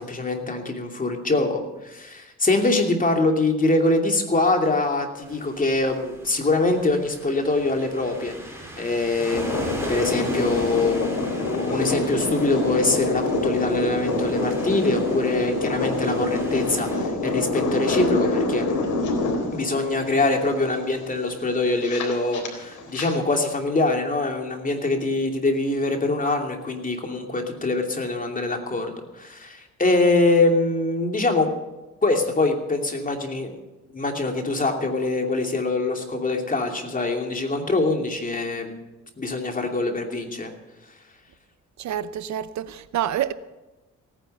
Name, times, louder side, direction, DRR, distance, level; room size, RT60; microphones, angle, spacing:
voice 1, 0.0-18.7 19.5-31.5 32.0-33.5 33.9-38.7 39.2-40.5, left 2 dB, 25° left, 2.8 m, -24 dB
sound 1, 5.2-17.0, right 1 dB, 10° right, 4.8 m, -40 dB
sound 2, 9.3-23.1, left 2 dB, 75° left, 3.8 m, -26 dB
voice 2, 41.8-43.3, right 11 dB, 65° right, 0.8 m, -27 dB
17.5 x 10.0 x 6.7 m
cardioid pair, 90°, 30 cm